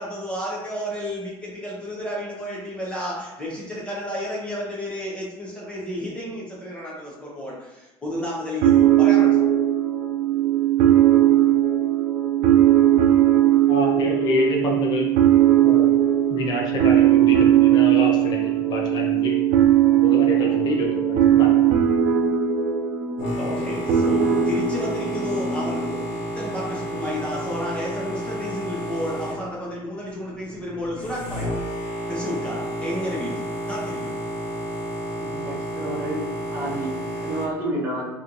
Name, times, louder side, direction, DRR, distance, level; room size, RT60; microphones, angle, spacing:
voice 1, 0.0-9.4 16.7-16.9 20.2-20.5 23.4-26.0 26.3-31.5 32.1-34.2, equal, 10° left, -5 dB, 0.9 m, -32 dB
sound 1, 8.6-26.1, right 11 dB, 75° right, 0.4 m, -19 dB
voice 2, 13.7-15.1 15.6-15.9 16.3-19.4 20.0-21.6, left 2 dB, 40° left, -1 dB, 0.7 m, -27 dB
Boat Water vehicle, 23.2-37.5, right 1 dB, 60° left, 1.3 m, -31 dB
voice 3, 35.2-36.3 36.5-38.1, right 1 dB, 20° right, -6 dB, 1.1 m, -30 dB
4.2 x 2.9 x 2.6 m, 1.1 s
cardioid pair, 135°, 11 cm